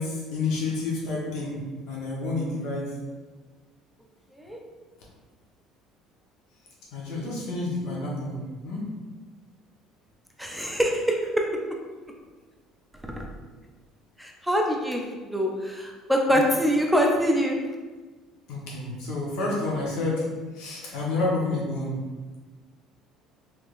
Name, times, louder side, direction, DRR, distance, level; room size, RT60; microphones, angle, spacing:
voice 1, 0.0-1.6 1.9-2.9 6.9-8.8 16.3-16.4 18.5-20.2 20.5-21.9, left 2 dB, 75° left, -4 dB, 0.9 m, -29 dB
voice 2, 10.4-11.4 13.2-13.3 14.2-17.6, equal, ahead, 1 dB, 0.3 m, -24 dB
3.4 x 3.3 x 2.4 m, 1.3 s
cardioid pair, 150°, 0 cm